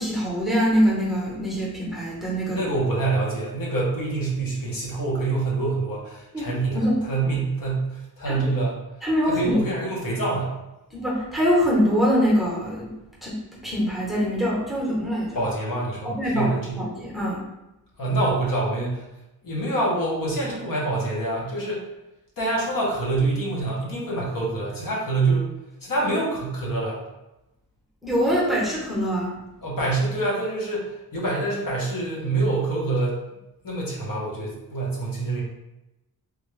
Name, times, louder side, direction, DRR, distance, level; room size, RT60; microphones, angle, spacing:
voice 1, 0.0-2.6 6.3-6.5 6.7-7.0 8.3-8.6 9.0-9.6 10.9-12.9 13.2-13.4 13.6-15.4 16.0-17.4 28.0-29.3, equal, ahead, -6 dB, 0.8 m, -23 dB
voice 2, 2.4-8.8 9.2-10.5 15.3-16.8 18.0-19.0 19.4-21.8 22.4-25.5 25.8-27.0 29.6-33.2 33.6-35.4, right 2 dB, 60° left, -4 dB, 0.9 m, -26 dB
3.5 x 2.2 x 3.1 m, 0.94 s
wide cardioid pair, 165°, 38 cm